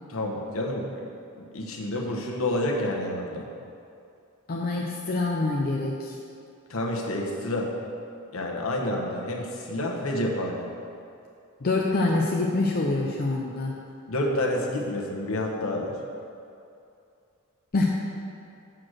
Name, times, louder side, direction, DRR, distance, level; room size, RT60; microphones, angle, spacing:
voice 1, 0.1-1.1 1.4-3.5 6.7-7.7 8.3-10.7 14.1-15.9, left 1 dB, 65° left, -1 dB, 1.1 m, -29 dB
voice 2, 4.5-6.2 11.6-13.7 17.7-17.8, left 2 dB, 45° left, -2 dB, 0.6 m, -25 dB
6.9 x 5.9 x 6.4 m, 2.6 s
head